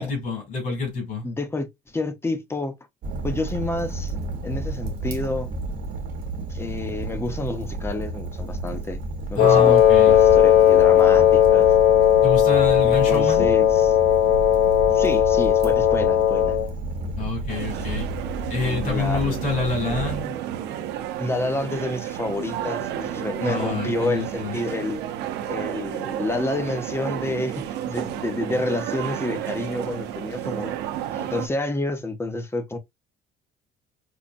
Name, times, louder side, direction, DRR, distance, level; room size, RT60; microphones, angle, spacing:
voice 1, 0.0-1.2 9.4-10.2 12.2-13.5 17.2-18.1 18.5-20.3 23.4-24.5, left 4 dB, 60° left, 2.6 m, -27 dB
voice 2, 1.2-1.7 1.9-2.7 3.2-4.1 4.4-5.5 6.5-9.0 9.3-11.7 12.8-14.0 14.9-16.6 18.6-19.4 21.2-25.0 25.5-30.7 31.1-32.8, left 2 dB, 15° left, 0.7 m, -29 dB
Fire, 3.0-20.2, right 2 dB, 65° right, 1.0 m, -31 dB
Wind instrument woodwind instrument, 9.4-16.7, left 10 dB, 85° left, 0.4 m, -17 dB
sound 1, 17.5-31.5, right 11 dB, 85° right, 0.6 m, -31 dB
5.3 x 2.1 x 2.5 m
cardioid pair, 110°, 17 cm